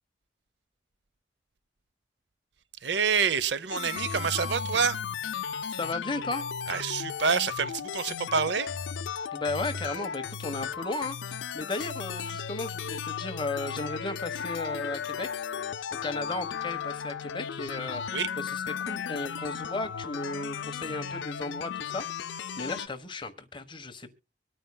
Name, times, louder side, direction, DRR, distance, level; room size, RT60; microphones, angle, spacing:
voice 1, 2.8-5.0 6.7-8.7 18.1-18.3, right 6 dB, 70° right, 0.7 m, -27 dB
sound 1, 3.7-22.9, left 7 dB, 90° left, 0.5 m, -35 dB
voice 2, 5.8-6.5 9.3-15.4 16.0-18.0 18.4-22.1 22.3-24.1, left 2 dB, 30° left, 1.2 m, -35 dB
25.0 x 9.0 x 2.2 m
head